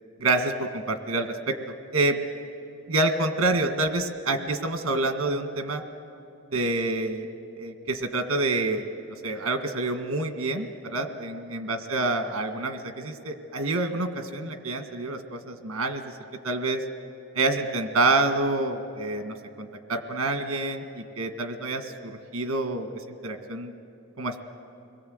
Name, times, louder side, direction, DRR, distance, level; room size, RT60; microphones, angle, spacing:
voice 1, 0.2-1.5 1.9-2.2 2.9-5.8 6.5-7.3 7.6-8.9 9.2-16.0 16.4-16.8 17.3-23.7 24.2-24.4, right 2 dB, 70° right, 6 dB, 1.8 m, -27 dB
30.0 x 22.0 x 8.0 m, 2.6 s
head